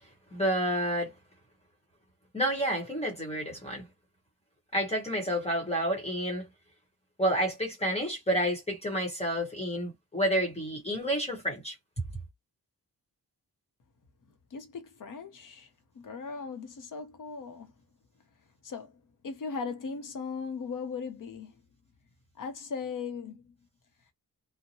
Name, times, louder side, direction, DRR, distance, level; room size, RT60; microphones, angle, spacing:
voice 1, 0.3-1.1 2.3-3.8 4.7-6.4 7.2-12.0, equal, 15° left, 1.0 m, -29 dB
voice 2, 14.5-15.7 15.9-17.7 18.6-21.5 22.4-23.5, left 5 dB, 55° left, 0.8 m, -38 dB
2.8 x 2.1 x 2.8 m
wide cardioid pair, 145°, 38 cm